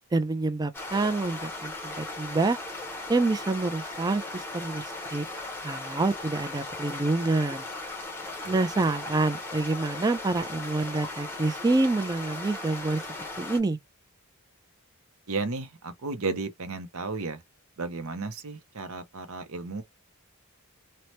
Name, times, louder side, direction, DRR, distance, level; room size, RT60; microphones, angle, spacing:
voice 1, 0.1-2.6 3.1-5.3 5.6-7.6 8.5-13.0 13.4-13.8, right 3 dB, 15° right, 0.3 m, -27 dB
sound 1, 0.7-13.6, left 2 dB, 10° left, 0.7 m, -37 dB
voice 2, 8.4-8.9 15.3-17.4 17.8-19.8, right 3 dB, 70° right, 0.7 m, -34 dB
2.8 x 2.1 x 3.0 m
head